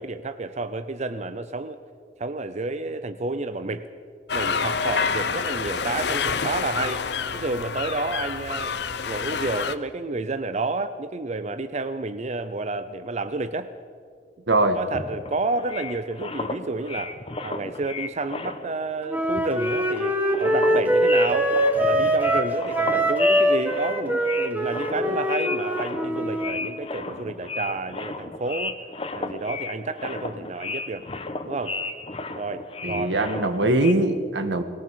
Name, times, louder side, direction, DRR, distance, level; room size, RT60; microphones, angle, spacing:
voice 1, 0.0-1.8 2.2-3.9 4.3-7.0 7.3-8.8 9.0-13.7 14.7-17.1 17.4-28.8 29.1-31.1 31.4-31.8 32.3-33.5, right 3 dB, 40° right, 10 dB, 0.6 m, -30 dB
sound 1, 4.3-9.7, left 5 dB, 65° left, 0.8 m, -27 dB
voice 2, 14.5-14.8 32.8-34.6, right 2 dB, 85° right, 7 dB, 1.7 m, -22 dB
sound 2, 14.9-18.9 19.2-33.9, left 3 dB, 30° left, 1.2 m, -34 dB
Wind instrument woodwind instrument, 19.1-26.5, equal, 10° right, 1.8 m, -23 dB
20.5 x 17.5 x 7.5 m, 2.2 s
head